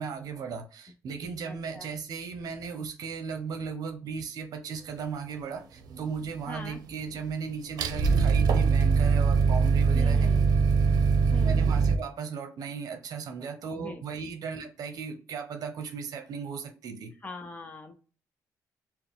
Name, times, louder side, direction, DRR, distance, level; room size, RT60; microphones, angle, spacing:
voice 1, 0.0-10.3 11.4-17.1, right 6 dB, 65° right, 0.9 m, -36 dB
voice 2, 1.4-1.9 6.5-6.8 9.9-10.5 11.3-12.0 13.7-14.3 17.2-17.9, left 2 dB, 20° left, 0.6 m, -42 dB
sound 1, 5.9-6.8 7.1-12.0, right 5 dB, 90° right, 0.6 m, -22 dB
4.6 x 2.1 x 3.6 m
cardioid pair, 160°, 7 cm